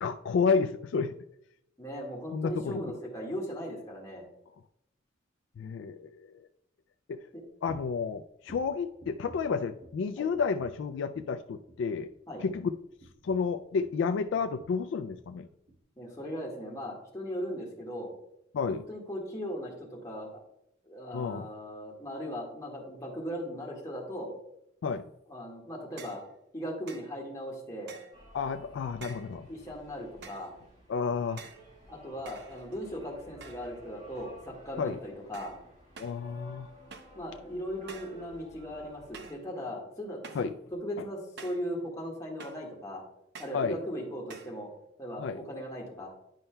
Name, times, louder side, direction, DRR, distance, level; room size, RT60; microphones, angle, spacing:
voice 1, 0.0-1.1 2.3-3.0 5.6-6.3 7.1-7.2 7.6-12.1 12.4-12.7 13.2-15.5 18.5-18.8 21.1-21.5 24.8-25.0 28.3-29.5 30.9-31.4 34.8-35.0 36.0-36.7 40.3-40.5 43.5-43.8 45.2-45.4, left 5 dB, 65° left, 8 dB, 0.3 m, -31 dB
voice 2, 1.8-4.3 7.3-7.4 10.2-10.3 12.3-12.4 16.0-18.1 18.7-20.4 20.8-24.3 25.3-26.2 26.5-27.9 29.5-30.5 31.9-35.5 37.1-43.0 43.4-44.7 45.0-46.1, equal, 15° left, -3 dB, 1.6 m, -38 dB
sound 1, 7.7-8.0 8.4-10.1 10.3-10.9 11.1-11.4 11.7-14.0 14.3-14.8 15.1-15.3 15.7-15.8, right 1 dB, 80° right, 2.8 m, -53 dB
sound 2, 26.0-26.3 26.9-27.1 27.9-28.2 29.0-29.4 30.2-30.6 31.4-31.7 32.3-32.9 33.4-33.8 34.1-34.6 35.3-35.6 36.0-36.2 36.9-37.2 37.9-38.2 39.1-39.5 40.2-40.6 41.4-41.7 42.4-42.7 43.3-43.7 44.3-44.6, right 5 dB, 60° right, 0.6 m, -49 dB
sound 3, 28.1-39.3, equal, 35° right, 1.9 m, -53 dB
10.5 x 5.5 x 2.2 m, 0.78 s
head